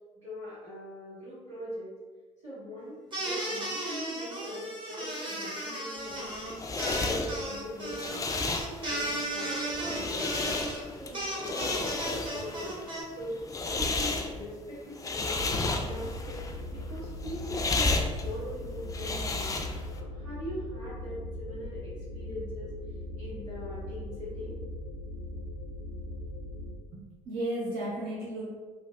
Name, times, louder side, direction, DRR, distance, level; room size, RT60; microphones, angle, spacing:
voice 1, 0.1-1.9 2.4-6.2 6.7-8.3 8.8-10.3 10.9-11.9 12.3-12.8 13.1-15.4 15.8-19.5 19.9-22.7 23.2-24.6, equal, 90° right, -13 dB, 1.5 m, -41 dB
sound 1, 3.1-13.0, right 1 dB, 30° right, 0.9 m, -35 dB
sound 2, 6.1-20.0, left 3 dB, 20° left, 0.3 m, -33 dB
sound 3, 15.3-26.7, left 1 dB, 80° left, 0.5 m, -40 dB
voice 2, 26.9-28.5, right 1 dB, 65° right, -6 dB, 0.8 m, -34 dB
3.2 x 2.4 x 2.3 m, 1.4 s
hypercardioid pair, 50°, 17 cm